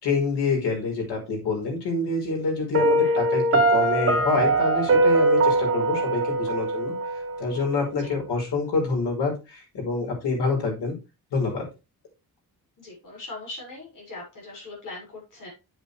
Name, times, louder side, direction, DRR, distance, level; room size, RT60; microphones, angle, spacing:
voice 1, 0.0-6.9 7.4-10.9 11.3-11.6, left 3 dB, 90° left, 2 dB, 5.5 m, -26 dB
Piano, 2.7-7.7, right 2 dB, 35° right, 1.4 m, -22 dB
voice 2, 12.8-15.5, left 2 dB, 50° left, -2 dB, 6.5 m, -40 dB
9.8 x 8.1 x 3.4 m, 0.28 s
wide cardioid pair, 180°, 39 cm